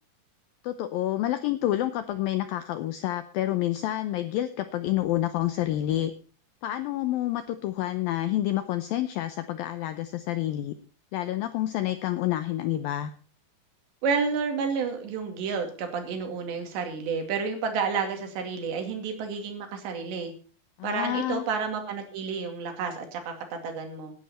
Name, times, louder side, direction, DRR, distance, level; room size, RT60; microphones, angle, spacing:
voice 1, 0.6-6.1 6.6-10.8 11.1-13.1 20.8-21.4, left 13 dB, 85° left, 11 dB, 2.0 m, -28 dB
voice 2, 14.0-20.3 20.8-24.1, right 5 dB, 75° right, 5 dB, 4.6 m, -30 dB
18.5 x 11.0 x 4.2 m, 0.39 s
omnidirectional pair, 5.1 m